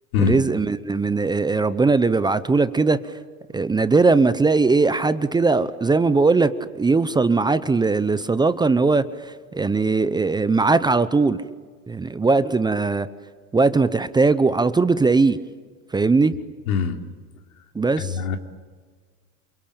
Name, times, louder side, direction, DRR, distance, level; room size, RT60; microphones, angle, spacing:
voice 1, 0.2-3.0 3.5-9.0 9.5-11.4 11.9-13.1 13.5-15.4 15.9-16.3 17.7-18.2, right 3 dB, 10° right, 14 dB, 0.8 m, -19 dB
voice 2, 16.7-17.0 18.1-18.4, left 6 dB, 85° left, 5 dB, 3.4 m, -22 dB
28.0 x 24.0 x 8.9 m, 1.5 s
supercardioid pair, 120°, 42 cm